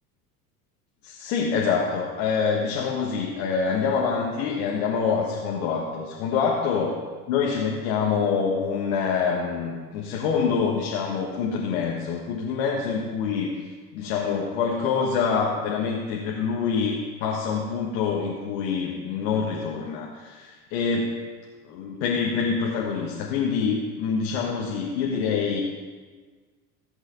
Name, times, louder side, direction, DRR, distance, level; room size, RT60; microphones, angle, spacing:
voice 1, 1.0-6.9 7.3-13.7 13.9-21.2 21.6-25.6, left 5 dB, 55° left, -2 dB, 1.5 m, -26 dB
16.5 x 8.1 x 3.9 m, 1.5 s
figure-of-eight pair, 70°, 49 cm